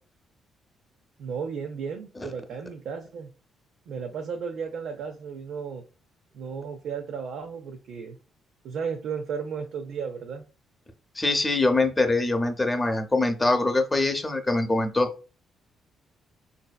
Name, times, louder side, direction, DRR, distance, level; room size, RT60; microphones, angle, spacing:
voice 1, 1.2-3.3 3.9-5.8 6.3-8.2 8.6-10.4, right 6 dB, 75° right, 3 dB, 0.5 m, -34 dB
voice 2, 11.2-15.1, left 2 dB, 15° left, 6 dB, 0.6 m, -23 dB
4.0 x 2.7 x 2.2 m, 0.33 s
cardioid pair, 90°, 0 cm